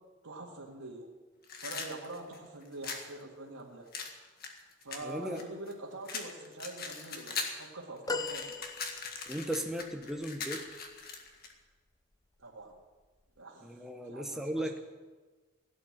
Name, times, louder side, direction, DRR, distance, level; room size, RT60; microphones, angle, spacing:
voice 1, 0.2-1.1 1.6-3.9 4.8-8.6 12.4-12.7 13.4-14.6, right 2 dB, 90° right, -4 dB, 2.1 m, -45 dB
sound 1, 1.4-3.1 3.9-5.7 6.1-7.7 8.0-11.5, left 5 dB, 45° left, 1.8 m, -40 dB
voice 2, 5.0-5.4 9.3-10.7 13.6-14.8, right 1 dB, ahead, 3 dB, 0.9 m, -36 dB
sound 2, 8.1-9.5 10.2-10.3, left 3 dB, 15° left, 0.5 m, -38 dB
16.5 x 8.4 x 8.6 m, 1.3 s
head